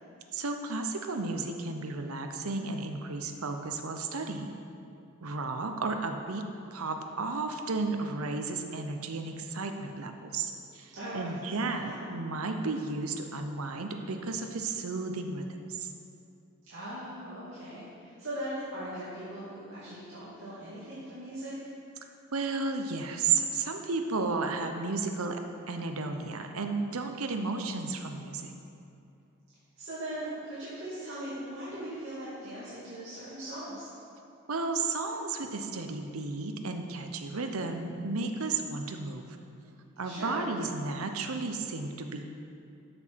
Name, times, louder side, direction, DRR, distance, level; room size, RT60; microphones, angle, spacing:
voice 1, 0.3-4.5 5.2-15.9 22.3-25.4 25.7-28.5 34.5-39.3 40.0-42.3, right 3 dB, 90° right, 5 dB, 0.8 m, -33 dB
voice 2, 10.9-11.3 11.6-12.0 16.6-21.5 29.8-33.9 40.0-40.4, right 1 dB, 60° right, -10 dB, 2.3 m, -39 dB
13.0 x 6.1 x 4.7 m, 2.6 s
head